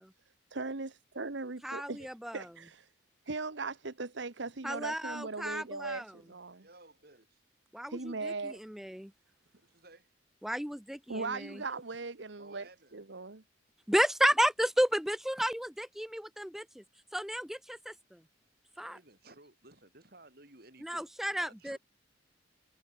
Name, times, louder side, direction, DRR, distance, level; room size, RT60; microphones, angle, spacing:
voice 1, 0.5-2.1 2.3-2.8 3.3-6.7 7.9-8.6 11.1-13.4, right 3 dB, 65° right, 1.1 m, -39 dB
voice 2, 1.6-2.5 4.6-6.1 7.7-7.9 8.7-9.1 10.4-11.6 13.9-16.8 17.1-18.2 18.8-19.0 20.8-21.8, equal, ahead, 0.5 m, -32 dB
voice 3, 6.6-7.4 9.6-10.1 12.4-12.9 18.8-21.8, right 2 dB, 50° right, 4.9 m, -57 dB
head